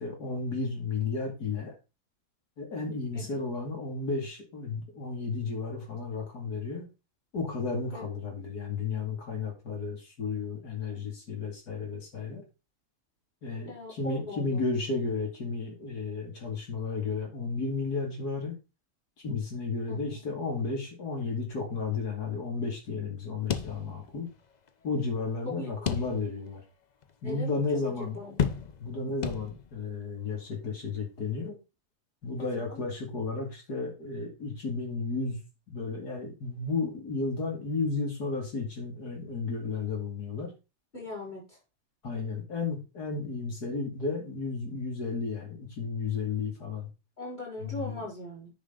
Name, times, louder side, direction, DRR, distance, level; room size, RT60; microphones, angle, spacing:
voice 1, 0.0-1.7 2.6-6.9 7.3-12.4 13.4-18.6 19.2-24.3 24.8-26.6 27.2-28.2 28.8-31.6 32.2-35.4 35.7-40.5 42.0-46.9 47.6-48.0, left 4 dB, 85° left, 1 dB, 3.1 m, -33 dB
voice 2, 13.7-14.6 19.9-20.1 25.4-25.7 27.2-28.4 32.4-32.8 40.9-41.6 47.2-48.5, left 2 dB, 30° left, -3 dB, 5.1 m, -40 dB
sound 1, 23.5-24.4 24.7-24.8 25.9-26.5 27.0-27.1 28.4-28.9 29.2-29.9, left 7 dB, 50° left, 0.5 m, -32 dB
9.7 x 5.2 x 3.9 m, 0.29 s
omnidirectional pair, 1.7 m